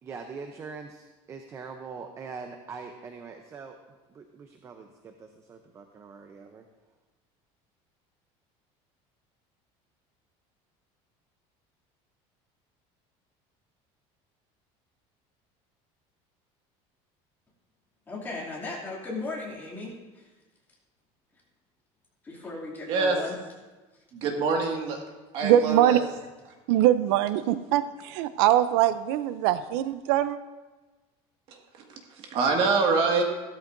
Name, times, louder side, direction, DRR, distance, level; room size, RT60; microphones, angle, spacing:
voice 1, 0.0-3.8 4.1-6.7, right 5 dB, 20° right, 5 dB, 0.6 m, -42 dB
voice 2, 18.1-20.2 22.2-23.3, left 3 dB, 15° left, -4 dB, 2.6 m, -36 dB
voice 3, 22.9-23.2 24.1-25.0 25.3-26.0 31.5-33.2, right 4 dB, 45° right, 1 dB, 1.9 m, -26 dB
voice 4, 25.4-26.0 26.7-30.4, right 12 dB, 85° right, 12 dB, 0.5 m, -22 dB
15.5 x 13.0 x 2.6 m, 1.2 s
cardioid pair, 175°, 13 cm